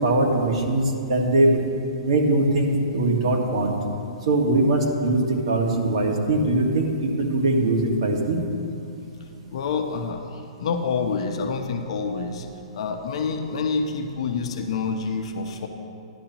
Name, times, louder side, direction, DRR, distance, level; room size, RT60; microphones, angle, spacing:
voice 1, 0.0-1.6 2.0-3.7 4.2-8.4, right 2 dB, 60° right, 0 dB, 1.7 m, -21 dB
voice 2, 9.2-12.5 12.7-15.7, left 5 dB, 55° left, 4 dB, 0.8 m, -27 dB
13.5 x 11.0 x 3.0 m, 2.6 s
hypercardioid pair, 165°, 4 cm